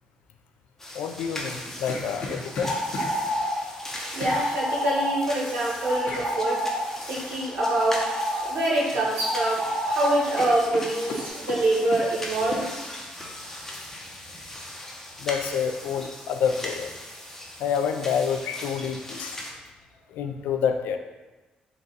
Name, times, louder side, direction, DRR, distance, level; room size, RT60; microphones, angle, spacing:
sound 1, 0.8-19.5, left 1 dB, 15° left, 0.7 m, -39 dB
voice 1, 0.9-2.8 13.2-13.3 15.2-16.9 17.6-19.4 20.1-21.0, left 7 dB, 85° left, 6 dB, 0.3 m, -28 dB
sound 2, 1.3-3.1 4.2-4.4 6.1-6.3 8.3-8.6 8.9-9.6 9.9-10.0 10.3-12.1 12.5-12.7, left 2 dB, 65° left, 0.7 m, -35 dB
sound 3, 2.4-11.3, equal, 15° right, 1.3 m, -30 dB
voice 2, 4.1-6.6 7.1-8.0 8.4-12.7, right 1 dB, 90° right, -4 dB, 1.0 m, -25 dB
3.9 x 2.3 x 3.8 m, 1.2 s
cardioid pair, 90°, 3 cm